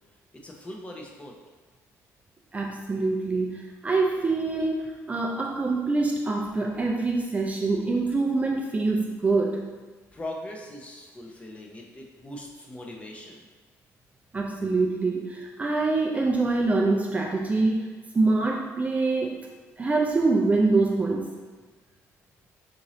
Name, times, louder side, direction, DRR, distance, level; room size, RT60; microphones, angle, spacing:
voice 1, 0.4-1.3 10.1-13.5, left 1 dB, 20° left, 0 dB, 0.6 m, -40 dB
voice 2, 2.5-9.6 14.3-17.9 18.1-19.5 19.8-21.3, right 3 dB, 25° right, 0 dB, 0.4 m, -25 dB
3.7 x 2.6 x 3.0 m, 1.4 s
cardioid pair, 100°, 6 cm